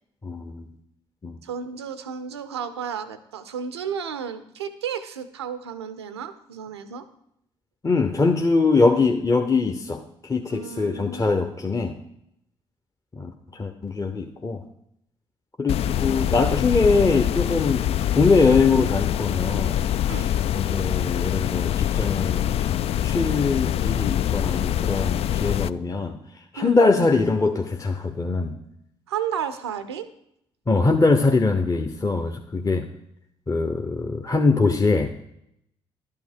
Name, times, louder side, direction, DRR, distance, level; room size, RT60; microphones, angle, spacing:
voice 1, 0.2-0.7 1.2-1.4 7.8-12.0 13.2-14.6 15.6-17.9 18.1-19.8 20.5-26.2 26.5-28.6 30.7-32.9 33.5-35.1, left 3 dB, 25° left, 4 dB, 0.9 m, -22 dB
voice 2, 1.4-7.1 10.5-11.2 20.0-20.3 26.6-26.8 29.1-30.1, right 7 dB, 85° right, 12 dB, 0.6 m, -32 dB
sound 1, 15.7-25.7, left 11 dB, 50° left, 0.3 m, -24 dB
11.5 x 8.6 x 4.7 m, 0.76 s
figure-of-eight pair, 45°, 13 cm